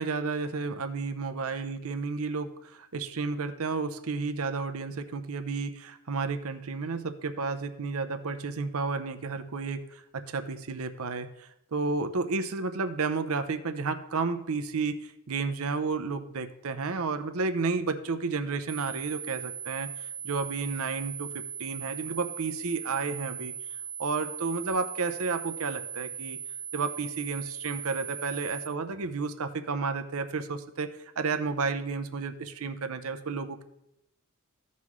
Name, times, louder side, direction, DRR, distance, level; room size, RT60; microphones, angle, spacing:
voice 1, 0.0-23.5 24.0-26.4 26.7-33.6, right 4 dB, 75° right, 9 dB, 0.7 m, -32 dB
sound 1, 18.7-28.7, right 8 dB, 25° right, 0.4 m, -39 dB
14.5 x 5.5 x 3.2 m, 0.84 s
head